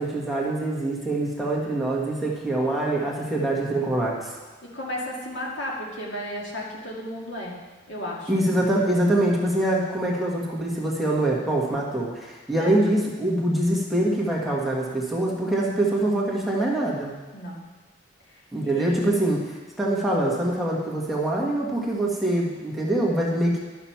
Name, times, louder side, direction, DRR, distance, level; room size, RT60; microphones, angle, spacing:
voice 1, 0.0-4.3 8.3-17.1 18.5-19.4 19.8-23.6, right 1 dB, ahead, -5 dB, 1.5 m, -24 dB
voice 2, 4.6-7.6 7.9-8.3 12.5-12.8 17.3-17.6 18.3-19.1, left 1 dB, 70° left, -3 dB, 2.0 m, -34 dB
12.0 x 6.0 x 5.8 m, 1.3 s
head